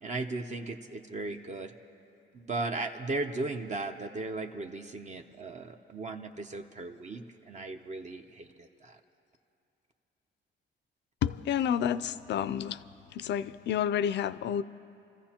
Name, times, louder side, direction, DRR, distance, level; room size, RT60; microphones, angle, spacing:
voice 1, 0.0-1.7 2.3-9.0, right 2 dB, 35° right, 4 dB, 0.7 m, -37 dB
voice 2, 11.2-12.8 13.1-14.6, left 9 dB, 65° left, 15 dB, 0.4 m, -30 dB
29.0 x 14.5 x 2.9 m, 2.6 s
cardioid pair, 105°, 20 cm